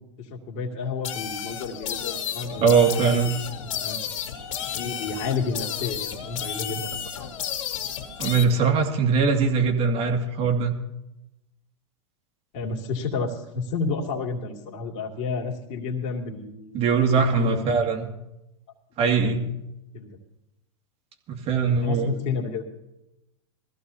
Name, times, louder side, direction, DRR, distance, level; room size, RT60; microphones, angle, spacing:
voice 1, 0.0-3.3 3.6-4.0 4.7-7.3 12.5-16.8 17.1-17.6 19.0-19.4 19.9-20.2 21.7-22.6, left 4 dB, 45° left, 1 dB, 2.6 m, -31 dB
sound 1, 1.0-8.5, left 9 dB, 70° left, 2.3 m, -32 dB
voice 2, 2.6-3.3 8.2-10.7 16.7-18.1 19.0-19.4 21.3-22.1, right 5 dB, 35° right, 3 dB, 2.2 m, -21 dB
21.0 x 15.0 x 2.8 m, 0.90 s
hypercardioid pair, 110°, 17 cm